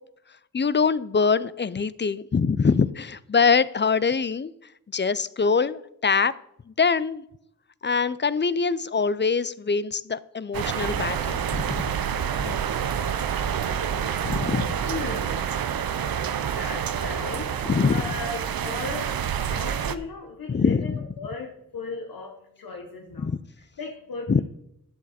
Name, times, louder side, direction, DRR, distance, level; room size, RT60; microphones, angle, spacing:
voice 1, 0.5-4.5 4.9-6.3 6.8-7.2 7.8-11.8 12.4-12.5 14.2-14.7 17.6-18.1 20.5-21.0 23.2-23.4 24.3-24.4, left 5 dB, 35° left, 18 dB, 0.5 m, -24 dB
sound 1, 10.5-20.0, right 8 dB, 90° right, 0.6 m, -28 dB
voice 2, 14.8-15.5 16.5-17.6 17.9-19.2 19.5-24.4, left 3 dB, 85° left, 1 dB, 1.1 m, -36 dB
11.5 x 7.4 x 4.3 m, 0.78 s
cardioid pair, 40°, 34 cm